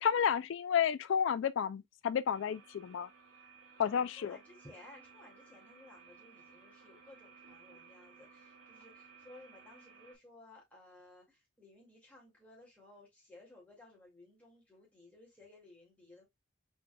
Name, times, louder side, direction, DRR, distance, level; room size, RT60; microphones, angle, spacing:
voice 1, 0.0-3.1 3.8-4.4, left 8 dB, 65° left, 0.3 m, -31 dB
sound 1, 2.3-10.2, right 5 dB, 65° right, 2.0 m, -58 dB
voice 2, 3.8-16.2, left 2 dB, 5° left, 2.1 m, -58 dB
4.4 x 4.3 x 2.2 m
head